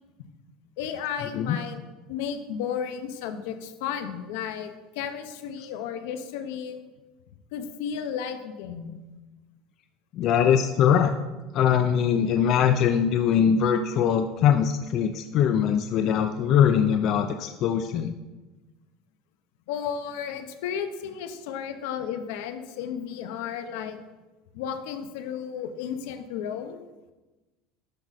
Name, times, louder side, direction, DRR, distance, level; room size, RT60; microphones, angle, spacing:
voice 1, 0.8-1.8 2.1-4.7 4.9-6.8 7.5-9.0 19.7-24.0 24.5-26.8, left 8 dB, 75° left, 8 dB, 0.9 m, -33 dB
voice 2, 10.1-11.1 11.5-18.1, left 8 dB, 40° left, 7 dB, 0.4 m, -22 dB
10.5 x 6.0 x 4.2 m, 1.2 s
cardioid pair, 155°, 0 cm